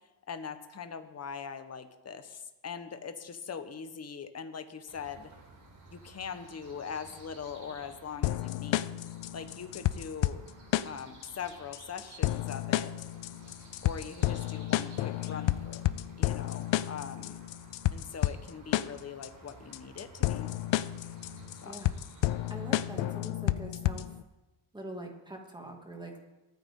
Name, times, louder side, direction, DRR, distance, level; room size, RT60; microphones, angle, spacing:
voice 1, 0.3-5.3 5.9-8.9 9.3-10.4 10.8-12.9 13.8-17.4 17.9-20.5 21.6-21.7, left 6 dB, 35° left, 9 dB, 1.1 m, -42 dB
sound 1, 4.9-23.1, right 2 dB, 40° right, 4.2 m, -54 dB
sound 2, 8.2-24.2, left 15 dB, 70° left, 0.6 m, -31 dB
voice 2, 21.6-22.0 22.5-24.2 24.7-26.2, right 1 dB, 10° right, 1 dB, 2.3 m, -43 dB
22.0 x 9.4 x 3.8 m, 1.0 s
cardioid pair, 105°, 46 cm